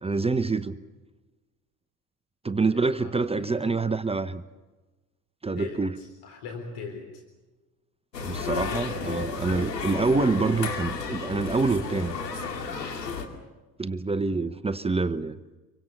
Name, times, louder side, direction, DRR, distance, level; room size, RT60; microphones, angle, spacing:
voice 1, 0.0-0.8 2.4-4.4 5.4-6.0 8.2-12.1 13.8-15.4, right 3 dB, 10° right, 12 dB, 0.9 m, -26 dB
voice 2, 2.7-3.7 5.6-7.2, left 4 dB, 55° left, 4 dB, 3.9 m, -41 dB
sound 1, 8.1-13.3, left 5 dB, 80° left, 2.5 m, -32 dB
27.5 x 24.0 x 6.7 m, 1.2 s
figure-of-eight pair, 60°, 49 cm